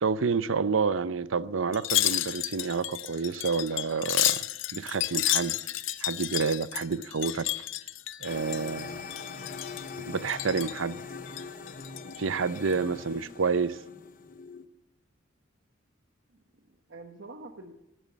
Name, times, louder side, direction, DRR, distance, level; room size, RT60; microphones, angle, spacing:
voice 1, 0.0-4.4 4.7-5.6 6.0-7.5 8.2-9.0 10.1-11.0 12.2-13.8, right 5 dB, 90° right, 0.6 m, -29 dB
Wind chime, 1.7-8.8 9.1-9.9 10.3-10.8 11.3-12.2 12.6-12.7, left 14 dB, 75° left, 0.7 m, -31 dB
sound 1, 8.2-14.6, left 4 dB, 45° left, 0.9 m, -42 dB
voice 2, 12.9-13.3 16.3-17.7, right 2 dB, 65° right, 1.2 m, -48 dB
18.0 x 11.0 x 7.3 m
head